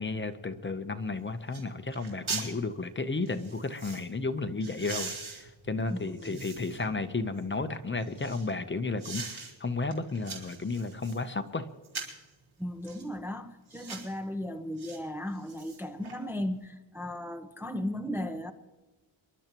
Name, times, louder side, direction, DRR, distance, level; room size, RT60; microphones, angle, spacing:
voice 1, 0.0-11.7, left 3 dB, 25° left, 9 dB, 0.8 m, -33 dB
sound 1, 1.0-1.1 1.5-1.7 1.9-2.5 3.3-4.1 4.6-6.9 7.4-8.5 9.0-9.5 9.9-11.2 11.8-12.3 12.8-13.1 13.7-14.1 14.8-15.0 15.3-16.2 16.5-16.6, right 4 dB, 85° right, 4.0 m, -41 dB
voice 2, 5.9-6.4 12.6-18.5, left 1 dB, 5° right, 5 dB, 0.6 m, -36 dB
27.0 x 12.0 x 3.0 m, 1.2 s
wide cardioid pair, 145°, 47 cm